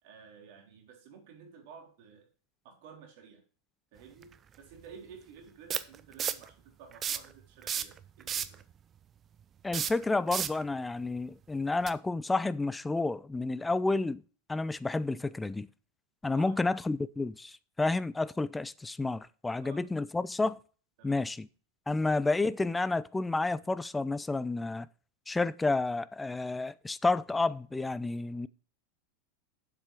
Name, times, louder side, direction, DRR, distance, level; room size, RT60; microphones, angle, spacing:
voice 1, 0.0-2.3 2.6-3.4 3.9-4.3 4.6-8.7 16.3-16.6 19.6-19.8 21.0-21.3, right 6 dB, 55° right, 3.4 m, -52 dB
sound 1, 4.2-4.3 5.7-6.5 6.9-7.3 7.6-8.6 9.7-10.6 11.8-11.9, right 8 dB, 30° right, 0.7 m, -32 dB
voice 2, 9.6-14.2 14.5-15.7 16.2-20.6 21.0-21.5 21.9-24.9 25.3-28.5, left 3 dB, 10° left, 0.5 m, -30 dB
7.6 x 7.4 x 5.1 m
hypercardioid pair, 90°, 0 cm